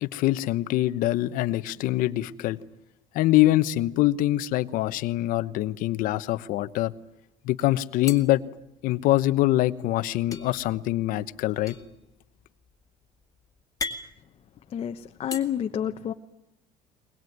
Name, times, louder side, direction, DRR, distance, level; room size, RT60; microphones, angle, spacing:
voice 1, 0.0-2.6 3.1-6.9 7.4-8.4 8.8-11.8, left 16 dB, 65° left, 1.0 m, -24 dB
sound 1, 4.7-5.6 6.0-6.1 6.4-7.1 8.0-9.3 10.3-15.4, left 4 dB, 25° left, 2.2 m, -40 dB
voice 2, 14.7-16.1, left 9 dB, 40° left, 1.1 m, -29 dB
22.5 x 21.0 x 9.4 m
cardioid pair, 130°, 15 cm